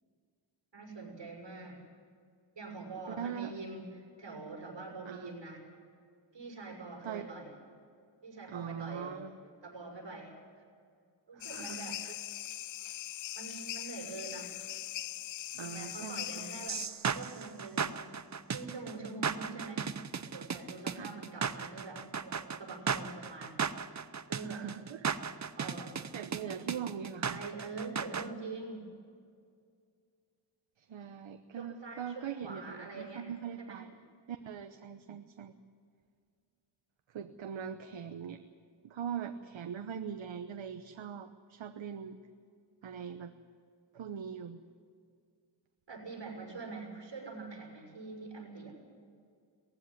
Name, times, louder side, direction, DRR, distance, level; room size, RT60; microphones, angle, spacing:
voice 1, 0.7-1.8 2.6-5.6 6.3-7.5 8.2-9.2 9.6-10.6 11.3-12.0 13.3-14.5 15.6-18.0 18.5-20.0 20.2-23.6 24.3-24.7 25.6-26.0 27.3-28.9 31.5-33.3 33.6-33.8 45.9-48.8, right 3 dB, 65° right, 1 dB, 6.1 m, -44 dB
voice 2, 3.2-3.5 5.1-5.4 7.0-7.3 8.5-9.4 11.3-12.1 15.5-16.6 20.9-21.1 24.3-25.2 26.1-27.4 30.8-33.9 34.3-35.5 37.1-38.4 38.8-42.2 42.8-43.3 43.9-44.6, right 8 dB, 85° right, 8 dB, 1.0 m, -41 dB
sound 1, 11.4-16.9, left 14 dB, 80° left, 0.5 m, -41 dB
sound 2, 16.7-28.3, right 6 dB, 40° right, 0.8 m, -35 dB
19.5 x 15.5 x 9.8 m, 2.2 s
wide cardioid pair, 105°, 45 cm